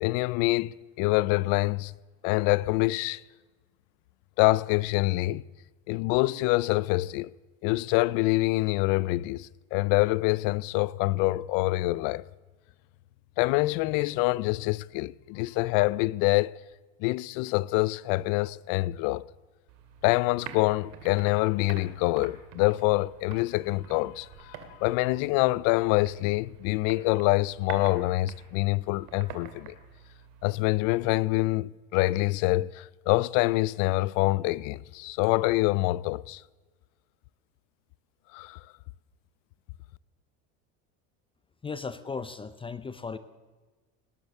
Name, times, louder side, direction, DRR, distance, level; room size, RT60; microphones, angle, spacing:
voice 1, 0.0-1.9 2.2-3.2 4.4-5.4 5.9-7.3 7.6-12.3 13.4-16.6 17.0-19.3 20.0-29.7 30.4-36.4 38.3-38.6, left 20 dB, 70° left, 0.5 m, -26 dB
sound 1, 19.7-31.1, right 8 dB, 70° right, 2.2 m, -47 dB
voice 2, 41.6-43.2, left 5 dB, 15° left, 0.5 m, -36 dB
19.0 x 10.5 x 7.0 m
supercardioid pair, 125°, 34 cm